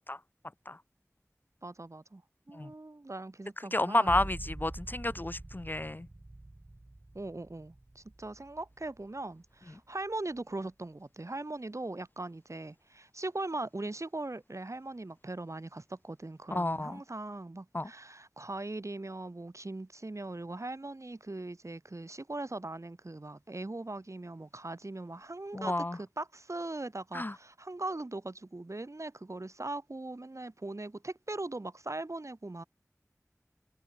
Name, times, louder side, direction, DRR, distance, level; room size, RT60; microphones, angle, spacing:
voice 1, 1.6-2.2 2.5-4.2 7.1-32.6, right 2 dB, 65° right, 1.9 m, -40 dB
voice 2, 3.7-6.1 16.5-17.0 17.7-17.9 25.5-26.0 27.1-27.3, left 1 dB, 35° left, 0.4 m, -31 dB
sound 1, 4.0-9.5 10.0-10.6, right 2 dB, 40° right, 0.8 m, -45 dB
wide cardioid pair, 40°, 6 cm